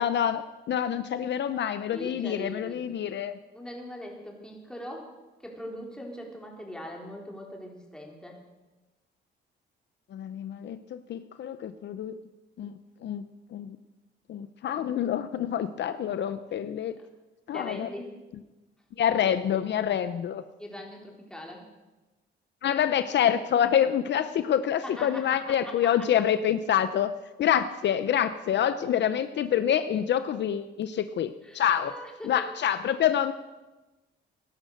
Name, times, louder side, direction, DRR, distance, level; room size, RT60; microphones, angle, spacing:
voice 1, 0.0-3.4 10.1-12.2 12.6-13.8 14.3-16.9 17.5-17.9 19.0-20.4 22.6-27.1 27.4-31.9 32.2-33.3, left 9 dB, 65° left, 11 dB, 0.7 m, -27 dB
voice 2, 1.9-2.8 3.5-5.2 5.4-8.4 17.5-18.1 20.6-21.7 24.8-25.6 25.8-25.9 31.4-32.3, equal, 5° left, -1 dB, 4.1 m, -41 dB
17.0 x 11.5 x 6.6 m, 1.1 s
cardioid pair, 90°, 20 cm